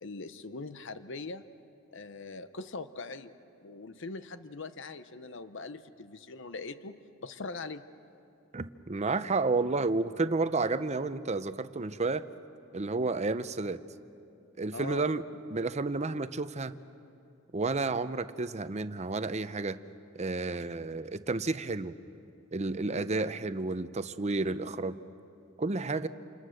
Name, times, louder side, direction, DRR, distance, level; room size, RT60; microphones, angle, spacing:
voice 1, 0.0-1.4 1.9-3.3 3.6-7.8 14.7-15.0 22.9-23.1, left 3 dB, 65° left, 11 dB, 0.8 m, -41 dB
voice 2, 8.5-12.3 12.7-13.8 14.6-15.2 15.5-16.7 17.5-19.8 20.1-21.9 22.5-25.0 25.6-26.1, right 3 dB, 35° right, 12 dB, 0.7 m, -31 dB
28.5 x 28.0 x 6.5 m, 2.6 s
head